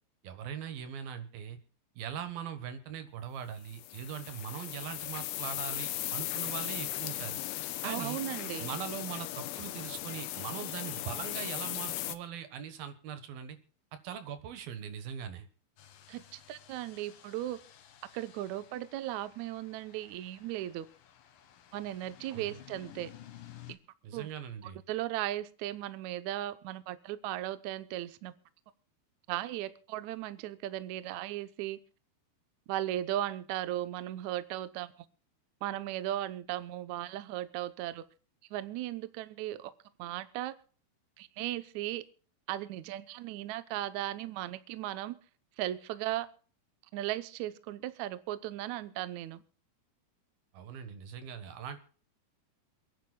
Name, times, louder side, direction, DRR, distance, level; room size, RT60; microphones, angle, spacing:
voice 1, 0.2-1.6 2.0-7.4 7.8-8.2 8.6-13.6 14.0-15.5 22.3-22.6 24.0-24.8 50.5-51.8, right 8 dB, 70° right, 10 dB, 3.0 m, -41 dB
sound 1, 3.7-12.1, left 15 dB, 90° left, 2.8 m, -37 dB
voice 2, 7.8-8.7 16.1-17.6 18.1-20.9 21.7-23.1 23.7-23.8 24.1-24.3 24.6-28.3 29.3-31.8 32.7-34.9 35.6-38.0 38.5-39.7 40.0-40.5 41.2-42.0 42.5-45.2 45.6-46.3 46.9-49.4, right 14 dB, 90° right, 13 dB, 1.6 m, -37 dB
sound 2, 15.8-23.8, left 11 dB, 65° left, 2.7 m, -55 dB
28.0 x 10.5 x 2.3 m, 0.43 s
omnidirectional pair, 4.6 m